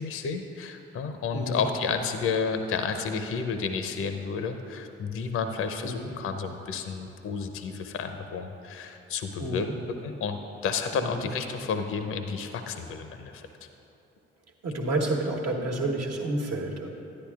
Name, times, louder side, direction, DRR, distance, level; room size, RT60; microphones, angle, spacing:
voice 1, 0.0-9.7 10.0-13.5, left 5 dB, 45° left, 7 dB, 0.6 m, -31 dB
voice 2, 9.4-9.7 10.9-11.2 14.6-16.9, right 2 dB, 55° right, -1 dB, 1.3 m, -30 dB
11.5 x 9.8 x 2.4 m, 3.0 s
hypercardioid pair, 45°, 30 cm